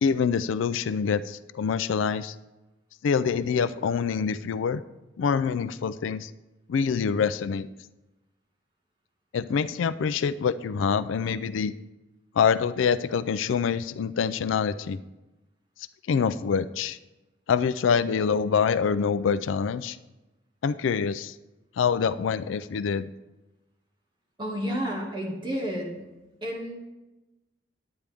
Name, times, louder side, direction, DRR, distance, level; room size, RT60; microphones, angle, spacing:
voice 1, 0.0-2.4 3.0-4.8 5.2-6.3 6.7-7.7 9.3-11.7 12.4-15.0 16.1-17.0 17.5-20.0 20.6-21.3 21.8-23.1, left 6 dB, 90° left, 15 dB, 0.4 m, -25 dB
voice 2, 24.4-26.0 26.4-26.7, equal, 25° right, -4 dB, 2.1 m, -31 dB
9.7 x 8.9 x 3.5 m, 1.0 s
head